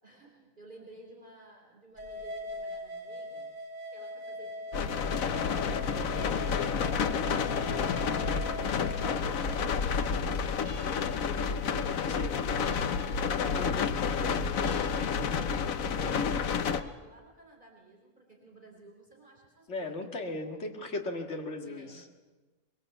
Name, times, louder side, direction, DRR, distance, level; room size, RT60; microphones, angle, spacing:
voice 1, 0.0-3.5 3.8-5.8 6.3-7.7 8.1-13.8 14.2-20.3 21.6-22.1, right 2 dB, 35° right, -1 dB, 4.0 m, -54 dB
sound 1, 2.0-9.6, left 1 dB, 70° right, 2.9 m, -41 dB
sound 2, 4.7-16.8, left 6 dB, 80° left, 1.4 m, -30 dB
voice 2, 8.1-8.4 12.1-12.4 13.6-13.9 19.7-22.0, left 2 dB, 55° left, 3 dB, 2.4 m, -37 dB
sound 3, 9.0-16.7, left 4 dB, 20° right, 6.6 m, -50 dB
23.0 x 22.5 x 8.0 m, 1.2 s
omnidirectional pair, 1.4 m